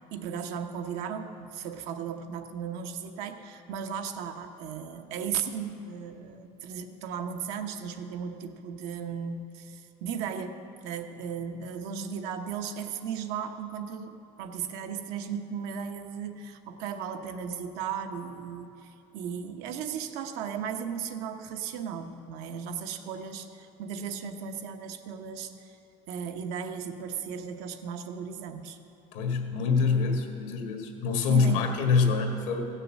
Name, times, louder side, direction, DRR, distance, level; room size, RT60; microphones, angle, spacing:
voice 1, 0.1-25.8 26.1-28.8 31.3-31.7, right 7 dB, 80° right, 7 dB, 0.9 m, -36 dB
voice 2, 29.1-32.7, left 5 dB, 90° left, 4 dB, 1.7 m, -25 dB
15.5 x 6.7 x 7.4 m, 3.0 s
supercardioid pair, 105°, 16 cm